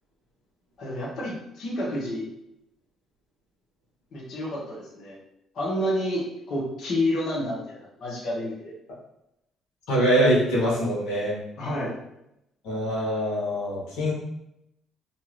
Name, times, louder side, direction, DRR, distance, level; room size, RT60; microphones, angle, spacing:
voice 1, 0.8-2.3 4.1-5.2 5.5-8.7 11.6-11.9, left 1 dB, 60° left, -5 dB, 1.0 m, -29 dB
voice 2, 9.9-11.3 12.6-14.1, equal, 85° left, -6 dB, 1.2 m, -23 dB
2.7 x 2.4 x 3.1 m, 0.84 s
cardioid pair, 95°, 0 cm